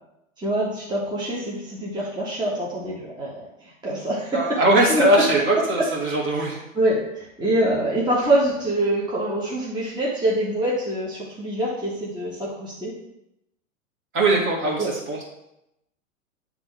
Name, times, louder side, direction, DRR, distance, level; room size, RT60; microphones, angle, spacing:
voice 1, 0.4-4.6 4.9-5.2 5.8-5.9 6.7-12.9 14.8-14.9, right 1 dB, 10° right, -5 dB, 1.7 m, -25 dB
voice 2, 4.3-6.6 14.1-15.2, right 1 dB, 30° right, -2 dB, 2.0 m, -20 dB
9.7 x 3.6 x 3.4 m, 0.85 s
figure-of-eight pair, 95°, 41 cm